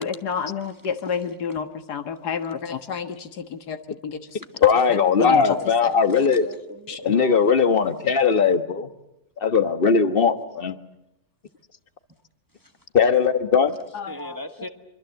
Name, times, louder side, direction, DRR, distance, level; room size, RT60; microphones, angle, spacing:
voice 1, 0.0-4.2 4.9-5.7 6.9-7.1 13.9-14.4, left 6 dB, 90° left, 2.0 m, -30 dB
voice 2, 4.6-6.5 7.0-8.9 9.4-10.8 12.9-13.8, left 6 dB, 40° left, 1.4 m, -19 dB
voice 3, 5.9-7.8 12.5-12.8 14.1-14.7, equal, 15° right, 1.3 m, -38 dB
25.5 x 24.0 x 7.9 m
omnidirectional pair, 1.7 m